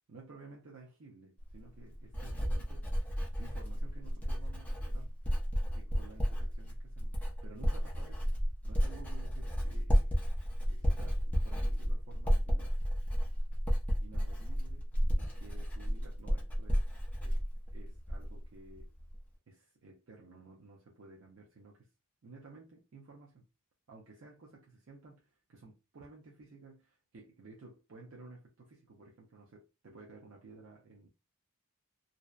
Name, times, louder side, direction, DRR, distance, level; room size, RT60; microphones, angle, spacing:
voice 1, 0.1-2.9 3.4-5.1 5.7-7.1 7.4-8.3 8.6-10.1 10.7-12.8 14.0-14.9 15.1-16.9 17.2-17.4 17.7-18.9 19.5-21.9 22.2-23.4 23.9-31.1, right 3 dB, 60° right, 0.5 m, -54 dB
Writing, 1.4-18.4 18.7-19.2, equal, 5° left, 0.5 m, -32 dB
2.6 x 2.1 x 2.3 m
head